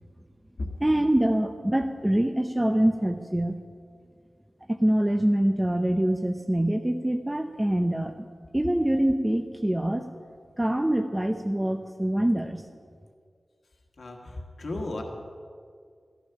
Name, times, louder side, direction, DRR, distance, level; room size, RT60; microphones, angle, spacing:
voice 1, 0.8-3.6 4.7-8.3 8.5-10.1 10.6-12.6, right 1 dB, 15° right, 5 dB, 0.7 m, -25 dB
voice 2, 14.0-15.0, left 2 dB, 75° left, 1 dB, 1.5 m, -34 dB
13.5 x 13.0 x 5.7 m, 2.1 s
wide cardioid pair, 60°, 0 cm